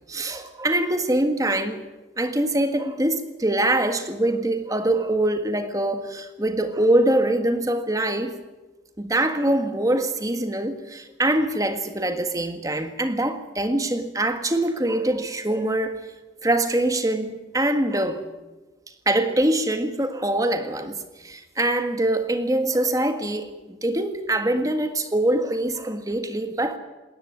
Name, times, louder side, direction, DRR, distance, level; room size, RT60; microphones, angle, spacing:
voice 1, 0.1-1.8 2.2-8.3 9.0-16.0 16.4-18.3 19.0-26.8, right 1 dB, 20° right, 8 dB, 1.6 m, -24 dB
20.0 x 18.5 x 9.6 m, 1.2 s
head